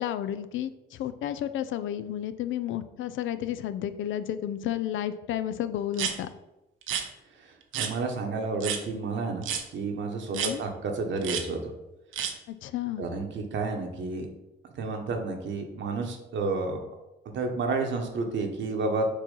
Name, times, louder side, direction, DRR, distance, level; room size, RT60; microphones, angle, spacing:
voice 1, 0.0-6.3 10.3-10.6 12.5-13.0, left 11 dB, 75° left, 12 dB, 0.5 m, -32 dB
sound 1, 5.9-6.1 6.8-7.0 7.7-7.9 8.6-8.8 9.4-9.6 10.3-10.5 11.2-11.4 12.1-12.3, right 8 dB, 90° right, 0.8 m, -30 dB
voice 2, 7.3-11.7 13.0-14.3 14.7-16.8 17.2-19.1, right 3 dB, 70° right, 3 dB, 1.2 m, -31 dB
6.8 x 3.0 x 5.4 m, 0.97 s
cardioid pair, 90°, 20 cm